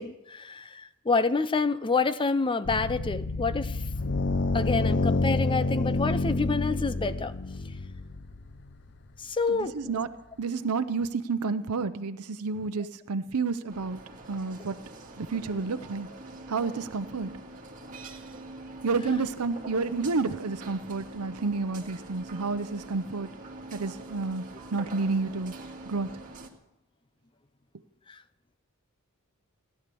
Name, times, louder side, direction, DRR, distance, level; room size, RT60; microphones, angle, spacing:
voice 1, 0.0-3.8 4.5-7.3 9.2-9.7 28.1-28.2, left 4 dB, 20° left, 14 dB, 0.5 m, -28 dB
sound 1, 2.6-9.2, left 2 dB, 55° left, 0.8 m, -29 dB
voice 2, 9.5-10.1 10.4-14.0 14.3-14.8 15.2-16.1 16.5-17.3 18.8-23.3 23.7-24.4 24.7-25.5 25.9-26.1, right 4 dB, 90° right, 10 dB, 0.7 m, -30 dB
sound 2, 13.7-26.5, right 2 dB, 35° right, 2.1 m, -44 dB
16.5 x 11.0 x 6.9 m, 0.93 s
head